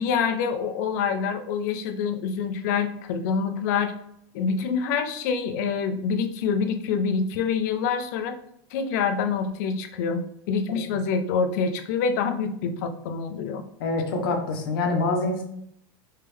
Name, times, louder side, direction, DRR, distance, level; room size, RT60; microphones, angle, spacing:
voice 1, 0.0-3.9 4.3-8.4 8.7-10.2 10.5-13.6, left 6 dB, 45° left, 7 dB, 0.5 m, -26 dB
voice 2, 13.8-15.4, left 3 dB, 70° left, 3 dB, 0.9 m, -25 dB
3.5 x 3.2 x 3.3 m, 0.71 s
supercardioid pair, 175°, 12 cm